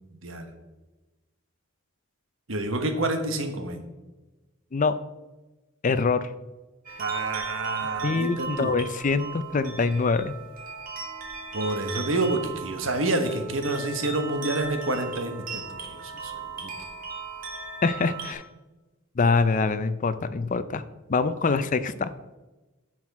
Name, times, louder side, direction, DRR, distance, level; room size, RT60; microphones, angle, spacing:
voice 1, 2.5-3.8 7.0-8.7 11.5-15.6 15.9-16.7, right 2 dB, 65° right, 6 dB, 1.2 m, -28 dB
voice 2, 5.8-6.3 8.0-10.3 17.8-18.4 19.2-20.8 21.1-22.1, left 4 dB, 40° left, 13 dB, 0.5 m, -24 dB
sound 1, 6.9-18.3, right 5 dB, 45° right, 1.6 m, -37 dB
9.9 x 6.2 x 4.7 m, 1.1 s
head